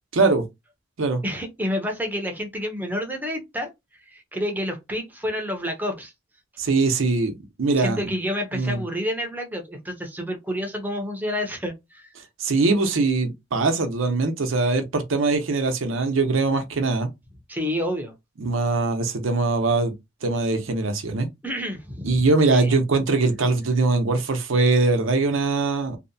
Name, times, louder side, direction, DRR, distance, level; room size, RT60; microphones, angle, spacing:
voice 1, 0.1-0.5 1.0-1.2 6.6-8.0 8.5-8.8 12.4-17.1 18.4-19.9 20.2-21.3 22.0-26.0, right 3 dB, 90° right, 0.6 m, -22 dB
voice 2, 1.2-3.7 4.1-6.1 7.8-12.1 17.5-18.1 21.4-22.8, equal, 10° right, 0.5 m, -29 dB
2.6 x 2.1 x 2.6 m
head